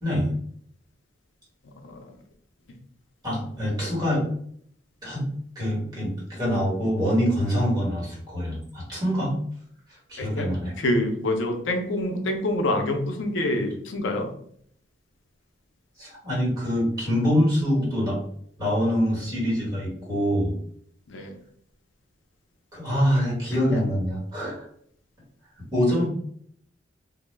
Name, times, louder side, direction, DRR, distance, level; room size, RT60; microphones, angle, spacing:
voice 1, 1.6-2.2 10.2-10.5 10.8-14.3 21.1-21.4, left 1 dB, 80° left, 4 dB, 0.5 m, -26 dB
voice 2, 3.2-4.2 5.0-5.2 5.5-9.4 9.9-10.7 16.0-18.2 18.6-20.5 22.7-24.7 25.7-26.1, equal, 20° right, -5 dB, 1.2 m, -25 dB
2.2 x 2.0 x 3.1 m, 0.65 s
head